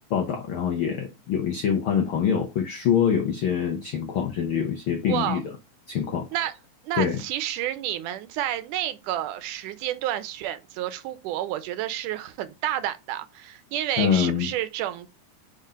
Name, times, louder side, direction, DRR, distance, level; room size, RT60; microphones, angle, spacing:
voice 1, 0.1-5.4 5.9-6.5 6.9-7.2 14.0-14.5, left 8 dB, 80° left, 1.1 m, -25 dB
voice 2, 5.1-5.4 6.3-6.5 6.8-15.1, right 12 dB, 80° right, 2.2 m, -30 dB
5.3 x 3.7 x 5.6 m
omnidirectional pair, 3.6 m